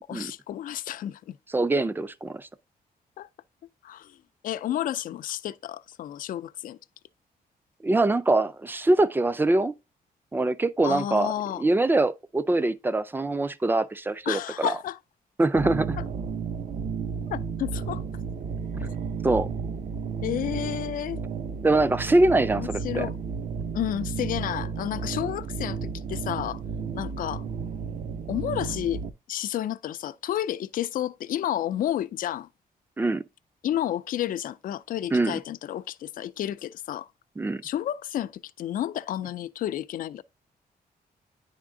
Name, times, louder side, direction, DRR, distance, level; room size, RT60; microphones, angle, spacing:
voice 1, 0.1-1.4 3.2-3.3 3.8-4.1 4.4-6.8 10.8-11.6 14.3-15.0 17.3-18.0 20.2-21.2 22.5-23.1 23.7-26.6 26.9-27.4 28.3-29.0 29.3-32.5 33.6-37.1 37.6-40.2, left 11 dB, 60° left, 0.4 m, -31 dB
voice 2, 1.5-2.5 7.8-9.7 10.3-11.3 11.6-14.7 15.4-16.0 19.2-19.5 21.6-23.1 33.0-33.2 35.1-35.4 37.4-37.6, right 2 dB, 15° right, 0.4 m, -23 dB
sound 1, 15.5-29.1, right 5 dB, 55° right, 0.6 m, -33 dB
10.0 x 3.6 x 3.7 m
wide cardioid pair, 150°, 16 cm